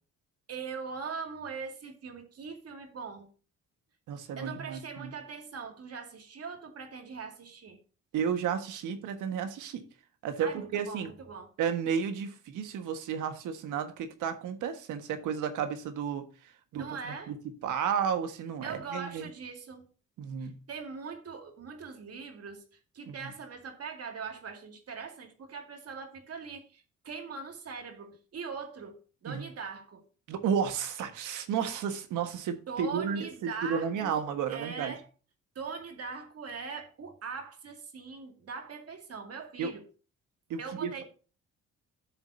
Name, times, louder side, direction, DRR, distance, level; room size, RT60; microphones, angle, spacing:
voice 1, 0.5-3.3 4.4-7.8 10.4-11.5 16.7-17.3 18.6-19.8 20.4-22.7 22.9-30.0 32.7-35.1 35.6-39.8 40.6-41.0, right 5 dB, 55° right, 2.2 m, -41 dB
voice 2, 4.1-5.1 8.1-9.8 10.2-11.1 11.6-16.9 17.3-17.4 17.6-19.3 20.2-20.5 23.0-23.3 29.3-29.4 30.3-34.9 39.6-39.7 40.5-41.0, right 7 dB, 85° right, 1.5 m, -32 dB
12.0 x 7.2 x 2.7 m
cardioid pair, 90°, 30 cm